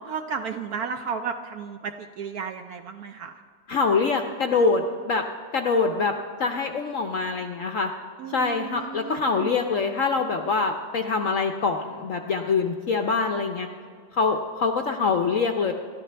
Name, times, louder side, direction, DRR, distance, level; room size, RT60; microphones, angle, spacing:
voice 1, 0.1-3.3 8.2-9.5, right 6 dB, 70° right, 7 dB, 0.9 m, -33 dB
voice 2, 3.7-5.2 5.5-6.1 6.4-7.9 8.3-13.7 14.1-15.7, left 4 dB, 65° left, 5 dB, 0.8 m, -24 dB
27.5 x 12.5 x 3.4 m, 2.2 s
omnidirectional pair, 2.1 m